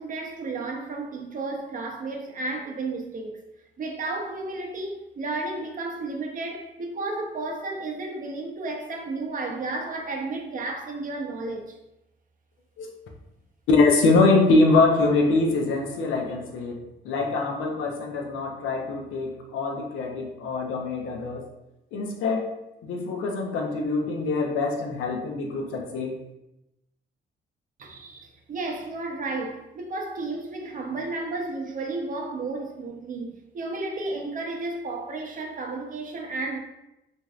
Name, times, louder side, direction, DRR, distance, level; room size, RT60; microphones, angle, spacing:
voice 1, 0.0-3.4 3.8-11.8 27.8-36.6, right 3 dB, 45° right, 2 dB, 0.6 m, -32 dB
voice 2, 13.7-21.4 21.9-22.5 22.8-26.2, left 3 dB, 80° left, 1 dB, 0.6 m, -23 dB
3.1 x 2.5 x 2.4 m, 0.91 s
cardioid pair, 90°, 20 cm